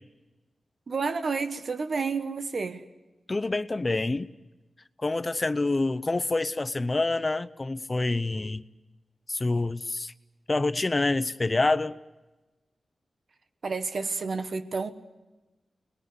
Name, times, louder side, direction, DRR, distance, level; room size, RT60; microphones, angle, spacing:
voice 1, 0.9-2.8 13.6-14.9, right 4 dB, 60° right, 1.5 m, -30 dB
voice 2, 3.3-4.3 5.0-8.6 9.3-10.1 10.5-12.0, left 2 dB, 30° left, 0.8 m, -27 dB
29.5 x 20.5 x 8.1 m
wide cardioid pair, 95°, 0 cm